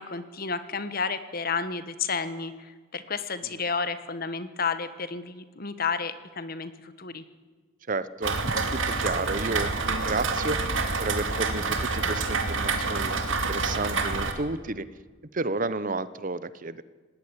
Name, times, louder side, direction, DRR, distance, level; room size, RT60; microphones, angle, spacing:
voice 1, 0.0-7.2, left 5 dB, 45° left, 12 dB, 1.4 m, -31 dB
voice 2, 7.9-10.6 11.0-14.9 15.3-16.8, right 3 dB, 40° right, 16 dB, 0.8 m, -31 dB
Rain, 8.2-14.3, right 3 dB, 70° right, 2.6 m, -27 dB
19.0 x 17.5 x 9.8 m, 1.4 s
head